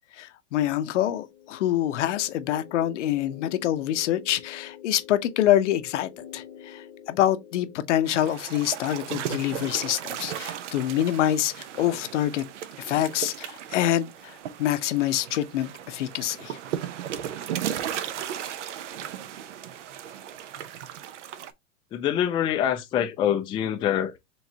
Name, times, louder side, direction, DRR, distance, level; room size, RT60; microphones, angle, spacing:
voice 1, 0.2-12.4 12.8-14.3 14.6-16.6, left 12 dB, 70° left, 0.8 m, -26 dB
sound 1, 1.2-7.8, left 9 dB, 90° left, 1.4 m, -46 dB
sound 2, 8.1-21.5, right 10 dB, 70° right, 0.7 m, -36 dB
voice 2, 21.9-24.2, left 10 dB, 15° left, 0.3 m, -25 dB
4.6 x 3.2 x 2.7 m
hypercardioid pair, 120°, 38 cm